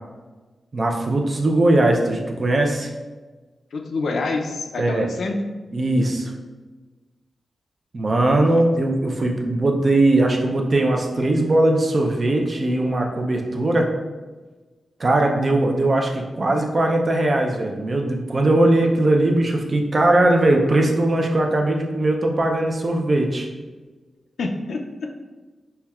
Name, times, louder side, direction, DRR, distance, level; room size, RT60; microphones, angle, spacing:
voice 1, 0.7-2.9 4.8-5.1 5.7-6.3 7.9-13.9 15.0-23.5, right 2 dB, 40° right, 2 dB, 0.4 m, -20 dB
voice 2, 3.7-5.4 24.4-25.2, left 3 dB, 75° left, 3 dB, 0.4 m, -27 dB
5.6 x 2.2 x 2.3 m, 1.3 s
wide cardioid pair, 140°, 0 cm